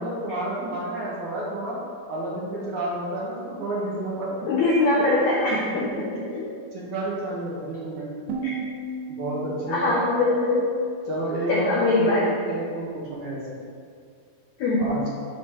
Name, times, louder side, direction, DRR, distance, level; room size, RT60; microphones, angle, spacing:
voice 1, 0.0-1.8 2.1-4.3 5.2-5.3 6.3-8.4 9.1-9.9 11.1-12.1 12.5-13.6 14.8-15.0, right 1 dB, 60° right, -6 dB, 2.5 m, -30 dB
voice 2, 4.5-5.9 6.3-6.4 8.4-8.5 9.7-10.7 11.5-12.4 14.6-15.0, left 2 dB, 80° left, -4 dB, 1.6 m, -22 dB
sound 1, 8.3-11.3, right 4 dB, 85° right, 3.0 m, -36 dB
12.0 x 4.2 x 4.7 m, 2.3 s
omnidirectional pair, 4.6 m